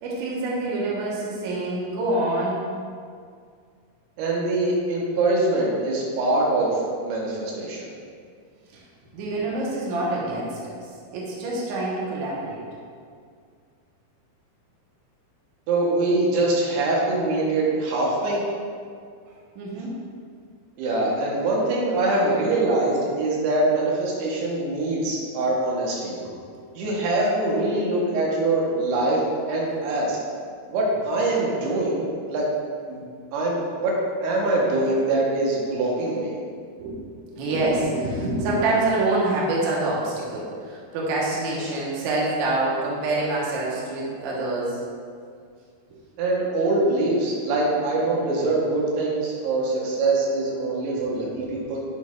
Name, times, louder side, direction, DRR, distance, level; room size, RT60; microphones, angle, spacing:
voice 1, 0.0-2.6 8.7-8.8 9.1-10.8 11.1-12.6 19.6-19.9 26.2-26.7 36.8-37.0 37.4-44.8, right 2 dB, 60° right, -5 dB, 2.2 m, -26 dB
voice 2, 4.2-7.9 15.7-18.4 20.8-26.2 26.7-30.2 30.7-32.4 32.9-33.0 33.3-33.9 34.2-36.4 46.2-51.8, right 2 dB, 90° right, -3 dB, 3.2 m, -23 dB
9.9 x 6.4 x 2.5 m, 2.2 s
omnidirectional pair, 4.5 m